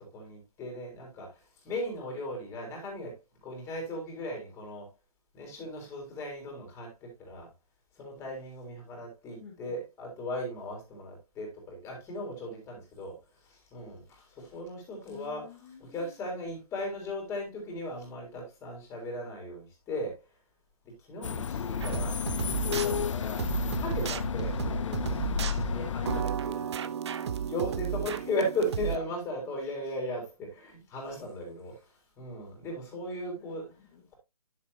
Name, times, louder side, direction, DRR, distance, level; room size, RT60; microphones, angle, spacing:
voice 1, 0.0-3.2 3.4-4.9 5.3-7.5 8.0-15.5 15.8-20.2 20.8-23.5 23.8-27.0 27.5-33.7, left 1 dB, 15° left, 1 dB, 3.9 m, -37 dB
voice 2, 9.4-9.8 15.0-16.1 27.2-27.5 28.9-29.2 33.3-34.1, left 7 dB, 35° left, -4 dB, 2.5 m, -52 dB
sound 1, 21.2-26.2, left 8 dB, 55° left, 0.5 m, -32 dB
sound 2, 21.8-29.0, right 8 dB, 45° right, 0.7 m, -33 dB
10.5 x 7.5 x 2.7 m, 0.24 s
figure-of-eight pair, 145°, 19 cm